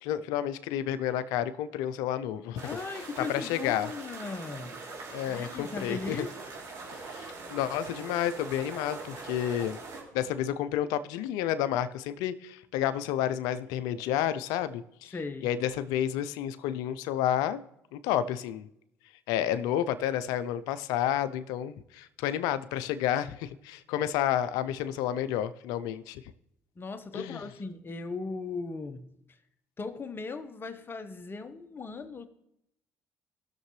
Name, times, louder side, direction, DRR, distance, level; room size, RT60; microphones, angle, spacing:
voice 1, 0.0-2.6 3.3-3.9 5.1-6.2 6.9-9.8 10.1-15.1 15.4-17.6 17.9-18.7 19.3-26.2 27.1-27.4, left 11 dB, 80° left, 14 dB, 0.5 m, -30 dB
voice 2, 2.6-6.4 15.1-15.5 26.8-29.1 29.8-32.3, left 4 dB, 35° left, 9 dB, 1.2 m, -38 dB
sound 1, 2.6-10.0, right 3 dB, 60° right, 3.2 m, -42 dB
17.0 x 6.7 x 3.2 m, 0.79 s
hypercardioid pair, 60°, 6 cm